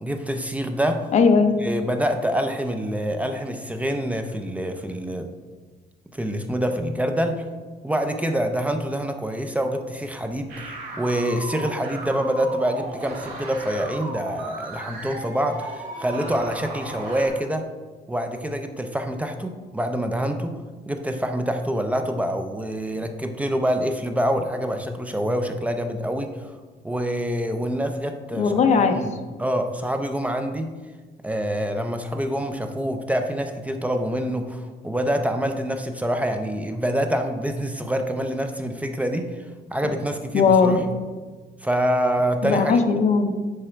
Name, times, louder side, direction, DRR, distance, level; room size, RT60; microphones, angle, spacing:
voice 1, 0.0-1.1 1.6-5.3 6.1-7.4 7.8-17.7 18.1-20.6 20.9-26.6 26.8-29.1 29.4-30.7 31.2-40.8 41.6-42.8, equal, 10° right, 6 dB, 0.4 m, -26 dB
voice 2, 1.1-1.5 28.4-29.0 40.3-40.9 42.4-43.3, left 5 dB, 40° left, 6 dB, 0.6 m, -18 dB
sound 1, 10.5-17.3, right 2 dB, 70° right, 1.9 m, -36 dB
9.9 x 3.4 x 4.4 m, 1.4 s
cardioid pair, 170°, 17 cm